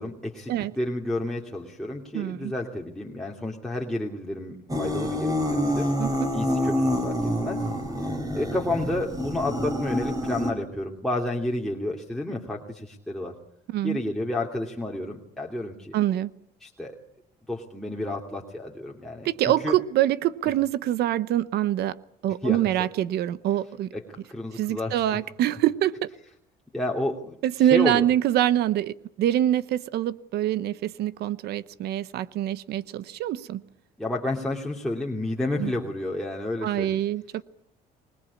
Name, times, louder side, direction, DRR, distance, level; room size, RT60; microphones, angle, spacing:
voice 1, 0.0-5.9 6.3-7.7 8.3-13.3 13.8-16.0 16.6-17.0 17.5-19.8 22.4-22.6 23.9-25.2 26.7-28.1 34.0-37.0, left 1 dB, 5° left, -2 dB, 2.9 m, -31 dB
voice 2, 2.1-2.5 6.0-6.3 13.7-14.0 15.9-16.3 19.2-22.0 22.2-23.9 24.6-26.1 27.4-33.6 35.6-35.7 36.6-37.4, right 12 dB, 75° right, 16 dB, 1.0 m, -25 dB
sound 1, 4.7-10.5, equal, 20° right, 5.7 m, -27 dB
25.0 x 20.5 x 8.5 m, 0.71 s
cardioid pair, 110°, 17 cm